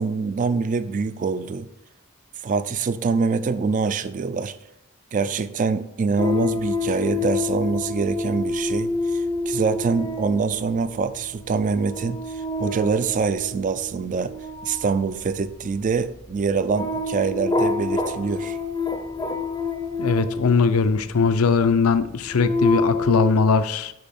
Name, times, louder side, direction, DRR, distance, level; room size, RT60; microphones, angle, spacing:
voice 1, 0.0-1.7 2.4-4.6 5.1-14.3 14.6-18.6, right 5 dB, 35° right, 13 dB, 0.3 m, -25 dB
sound 1, 6.2-21.3 21.9-23.3, left 3 dB, 15° left, 0.5 m, -28 dB
voice 2, 20.0-23.9, left 5 dB, 85° left, 12 dB, 0.5 m, -20 dB
6.7 x 5.3 x 4.2 m, 0.82 s
head